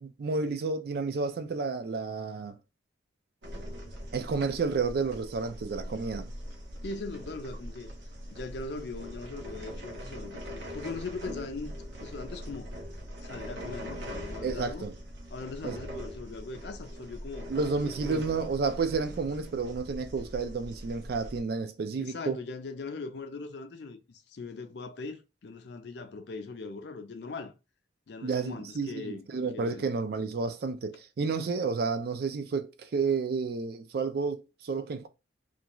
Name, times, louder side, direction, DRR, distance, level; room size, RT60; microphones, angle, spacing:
voice 1, 0.0-2.6 4.1-6.3 14.4-14.9 15.6-15.8 17.5-22.4 28.2-35.1, right 4 dB, 50° right, 0.3 m, -31 dB
sound 1, 3.4-21.4, equal, 70° right, 0.7 m, -42 dB
voice 2, 6.8-7.9 8.3-11.7 12.0-12.7 13.2-14.8 15.3-17.5 17.9-18.2 22.0-27.5 28.1-29.3 29.5-29.9, left 3 dB, 60° left, 0.4 m, -40 dB
2.5 x 2.2 x 2.9 m
head